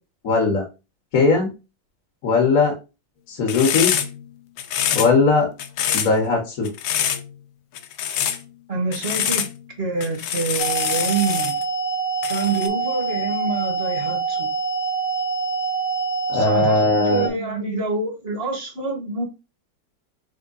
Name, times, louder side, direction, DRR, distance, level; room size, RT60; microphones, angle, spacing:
voice 1, 0.2-0.6 1.1-1.5 2.2-2.7 3.3-3.9 4.9-5.5 5.9-6.7 16.3-17.3, left 4 dB, 50° left, 1.4 m, -19 dB
sound 1, 3.5-4.2 4.6-5.3 5.6-6.1 6.6-7.3 7.7-8.4 8.9-9.6 10.0-11.6 12.2-12.7, left 9 dB, 90° left, 1.4 m, -25 dB
voice 2, 8.7-9.5 9.8-11.6 12.3-14.5 16.3-19.2, right 3 dB, 35° right, 1.1 m, -26 dB
sound 2, 10.6-17.3, right 5 dB, 70° left, 1.7 m, -25 dB
3.6 x 3.5 x 4.0 m
omnidirectional pair, 2.2 m